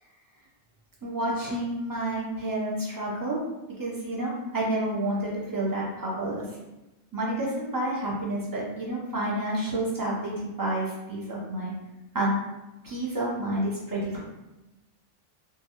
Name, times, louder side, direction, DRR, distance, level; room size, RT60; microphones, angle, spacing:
voice 1, 1.0-3.4 3.8-6.4 7.1-11.7 12.1-12.4 12.8-14.2, right 1 dB, 30° right, -5 dB, 0.4 m, -29 dB
2.2 x 2.2 x 2.8 m, 0.98 s
omnidirectional pair, 1.2 m